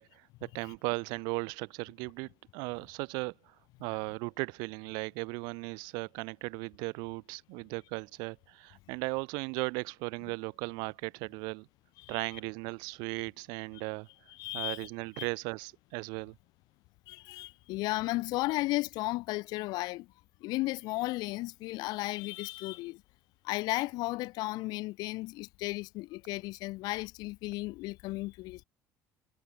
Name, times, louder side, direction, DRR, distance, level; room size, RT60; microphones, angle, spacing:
voice 1, 0.0-3.5 3.8-11.7 12.1-14.1 14.5-16.3, right 30 dB, 90° right, 6.1 m, -37 dB
voice 2, 14.4-14.9 15.2-15.3 17.1-20.1 20.4-23.0 23.4-28.6, left 20 dB, 75° left, 2.8 m, -34 dB
cardioid pair, 135°, 7 cm